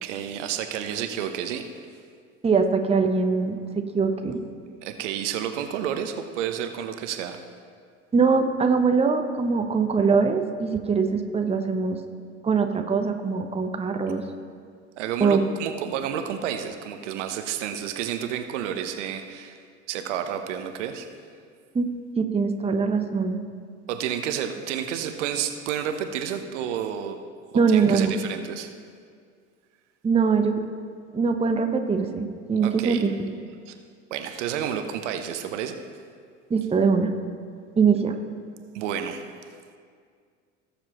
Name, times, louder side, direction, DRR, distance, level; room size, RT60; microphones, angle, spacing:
voice 1, 0.0-1.7 4.8-7.4 15.0-19.6 19.9-21.1 23.9-27.2 27.7-28.7 32.6-33.1 33.7-33.8 34.1-35.8 38.7-39.2, right 9 dB, 70° right, 7 dB, 0.9 m, -30 dB
voice 2, 2.4-4.4 8.1-12.0 12.4-14.2 15.2-15.4 21.7-21.9 22.2-23.4 27.5-28.2 30.0-30.5 31.1-33.3 36.5-37.1 37.8-38.1, right 5 dB, 15° right, 6 dB, 0.9 m, -22 dB
19.0 x 7.0 x 3.0 m, 2.1 s
figure-of-eight pair, 65°, 38 cm